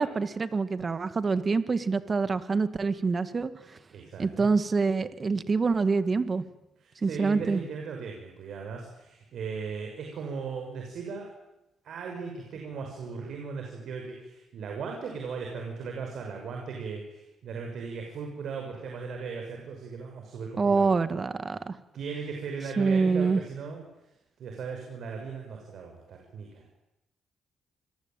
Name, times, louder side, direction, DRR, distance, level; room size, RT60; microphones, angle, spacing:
voice 1, 0.0-3.5 4.2-6.4 7.0-7.6 20.6-21.7 22.8-23.4, right 4 dB, 35° right, 11 dB, 2.1 m, -26 dB
voice 2, 3.9-4.5 6.8-11.3 11.8-20.9 21.9-23.8 24.4-26.6, right 5 dB, 70° right, 2 dB, 6.4 m, -37 dB
27.5 x 21.0 x 9.1 m, 0.93 s
cardioid pair, 90°, 0 cm